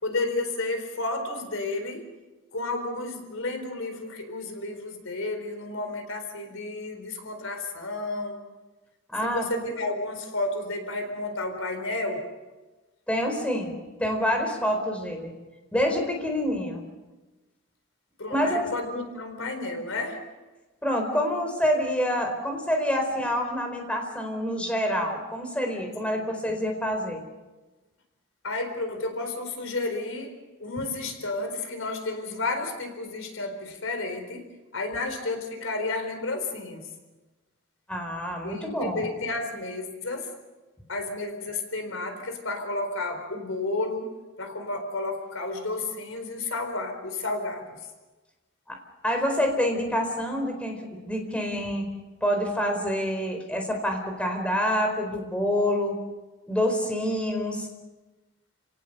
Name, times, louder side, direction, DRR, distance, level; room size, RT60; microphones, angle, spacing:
voice 1, 0.0-2.1 2.5-8.4 9.2-12.2 18.2-20.2 26.1-26.2 28.4-30.3 30.6-34.5 34.7-36.9 38.4-40.3 40.9-44.1 44.4-47.7, left 2 dB, 80° left, 6 dB, 4.2 m, -31 dB
voice 2, 9.1-9.4 13.1-13.7 14.0-15.3 15.7-16.8 18.3-18.7 20.8-27.2 37.9-39.0 48.7-48.8 49.0-51.8 52.2-56.0 56.5-57.7, equal, 5° left, 3 dB, 4.5 m, -27 dB
30.0 x 18.0 x 6.8 m, 1.2 s
head